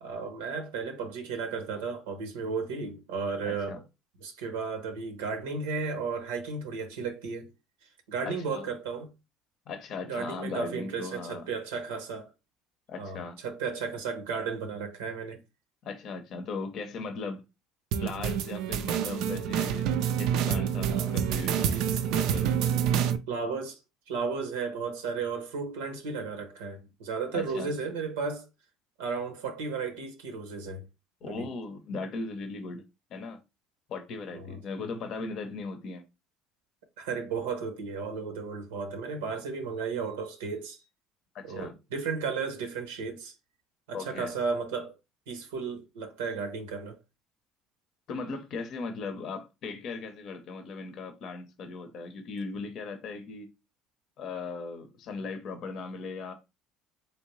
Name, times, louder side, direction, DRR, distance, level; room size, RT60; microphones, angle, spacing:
voice 1, 0.0-3.8 4.2-7.5 7.8-9.1 10.0-12.3 13.0-15.4 20.9-21.1 21.9-22.0 22.9-23.8 24.1-28.5 29.0-30.9 31.3-31.5 34.3-34.6 37.0-40.8 41.4-43.4 43.9-45.0 45.3-47.0, right 5 dB, 90° right, 0.7 m, -34 dB
voice 2, 3.4-3.8 8.2-8.7 9.7-11.5 12.9-13.4 15.8-17.4 18.0-19.9 20.2-21.8 22.1-22.8 27.3-27.7 31.2-32.8 33.1-33.4 33.9-36.0 41.3-41.7 43.9-44.3 48.1-53.5 54.2-56.3, left 4 dB, 55° left, 0.6 m, -38 dB
sound 1, 17.9-23.2, right 8 dB, 70° right, 0.3 m, -27 dB
3.2 x 2.7 x 3.0 m
supercardioid pair, 85°, 0 cm